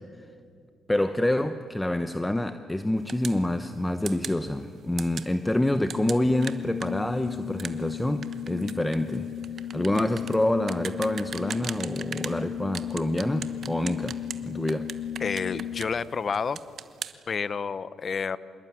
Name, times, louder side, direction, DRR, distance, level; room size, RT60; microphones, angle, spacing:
voice 1, 0.9-9.3 9.7-14.2 14.5-14.9, left 1 dB, 10° left, 9 dB, 1.0 m, -27 dB
sound 1, 3.1-3.4 4.1-4.4 5.0-5.3 5.9-12.4 12.7-14.4 14.7-16.1 16.3-17.1, right 7 dB, 55° right, 1.1 m, -38 dB
Organ, 5.9-16.1, left 10 dB, 75° left, 0.6 m, -36 dB
voice 2, 15.2-16.6 17.3-18.4, left 5 dB, 40° left, 16 dB, 0.9 m, -29 dB
26.0 x 21.5 x 9.6 m, 2.3 s
cardioid pair, 90°, 0 cm